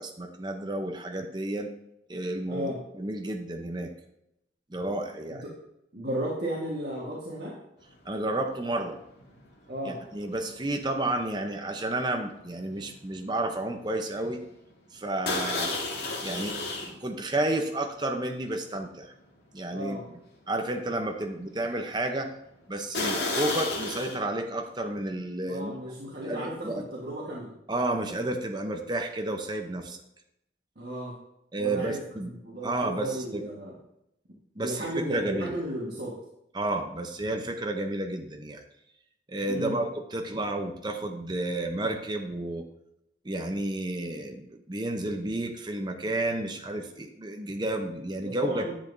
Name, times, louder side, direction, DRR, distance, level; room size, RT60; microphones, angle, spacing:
voice 1, 0.0-1.7 2.1-3.9 4.7-5.4 8.0-9.0 9.8-14.4 14.9-15.7 16.2-16.6 17.0-19.1 19.5-20.0 20.5-22.3 22.7-25.8 26.2-26.8 27.7-30.0 31.5-32.3 32.6-33.5 34.6-35.5 36.5-38.6 39.3-42.7 43.2-48.7, right 2 dB, 25° right, 4 dB, 0.7 m, -31 dB
voice 2, 5.9-7.6 9.7-10.0 19.7-20.1 25.5-27.5 30.7-31.2 31.6-32.0 32.2-33.8 34.6-36.2 39.5-39.8 48.2-48.7, equal, 60° right, -5 dB, 1.5 m, -34 dB
sound 1, 8.1-8.3 8.6-13.2 13.5-13.8 14.2-14.3 15.3-16.9 17.5-17.6 18.3-18.4 18.8-18.9 22.9-24.2, left 2 dB, 70° left, 1.7 m, -32 dB
10.5 x 8.1 x 2.7 m, 0.81 s
head